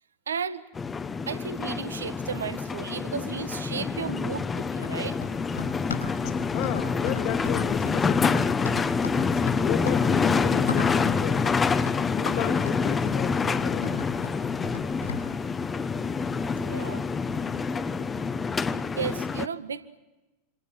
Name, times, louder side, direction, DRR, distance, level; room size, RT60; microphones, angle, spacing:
voice 1, 0.3-0.6 1.3-5.2 16.6-17.0 19.0-20.0, right 6 dB, 70° right, 12 dB, 1.6 m, -34 dB
sound 1, 0.7-19.5, left 5 dB, 15° left, 1.1 m, -27 dB
Run, 4.7-15.3, left 5 dB, 70° left, 5.8 m, -38 dB
voice 2, 6.2-8.5 9.3-11.5 12.1-14.0, left 11 dB, 40° left, 7 dB, 2.8 m, -34 dB
27.0 x 27.0 x 7.8 m, 1.1 s
figure-of-eight pair, 90°, 0 cm